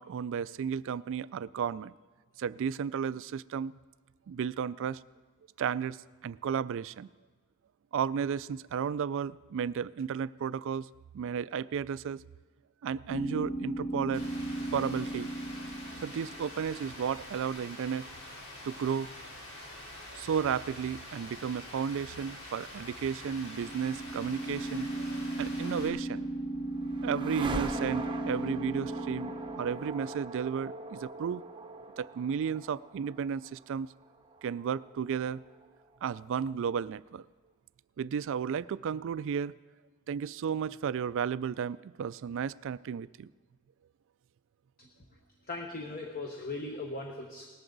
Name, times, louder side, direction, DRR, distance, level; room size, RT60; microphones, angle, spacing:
voice 1, 0.0-1.9 2.4-3.7 4.3-5.0 5.6-6.0 6.2-7.1 7.9-10.9 11.1-12.2 12.8-14.2 14.7-15.3 16.0-18.1 18.6-19.1 20.1-26.3 27.0-31.4 32.0-33.9 34.4-35.4 36.0-37.2 38.0-39.5 40.1-43.3, right 7 dB, 60° right, 17 dB, 0.3 m, -33 dB
sound 1, 13.1-17.2 23.2-30.2, right 2 dB, 20° left, 0.7 m, -37 dB
Rain, 14.1-25.9, left 1 dB, 75° left, 3.8 m, -46 dB
sound 2, 26.2-36.0, right 2 dB, 20° right, 0.7 m, -42 dB
voice 2, 45.5-47.5, left 2 dB, 40° left, 2 dB, 1.1 m, -38 dB
19.0 x 13.5 x 4.0 m, 1.4 s
head